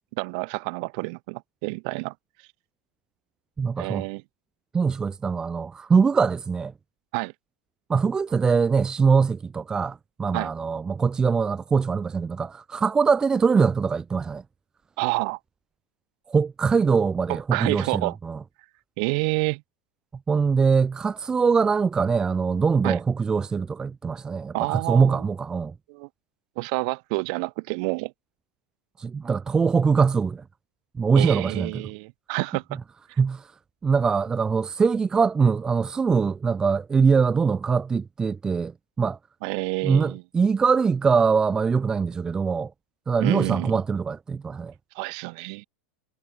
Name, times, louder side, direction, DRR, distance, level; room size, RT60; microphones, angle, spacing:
voice 1, 0.2-2.1 3.8-4.2 7.1-7.3 10.3-10.5 15.0-15.4 17.3-18.2 19.0-19.6 22.8-23.0 24.5-25.2 25.9-26.1 26.6-28.1 31.2-32.6 39.4-40.2 43.2-43.7 45.0-45.7, right 33 dB, 55° right, 3.7 m, -28 dB
voice 2, 3.6-4.0 4.7-6.7 7.9-14.4 16.3-18.4 20.3-25.7 29.0-30.4 31.0-31.8 33.2-33.5 33.8-38.7 39.0-39.2 39.8-42.7 43.1-44.7, right 5 dB, 15° right, 0.7 m, -22 dB
supercardioid pair, 140°, 5 cm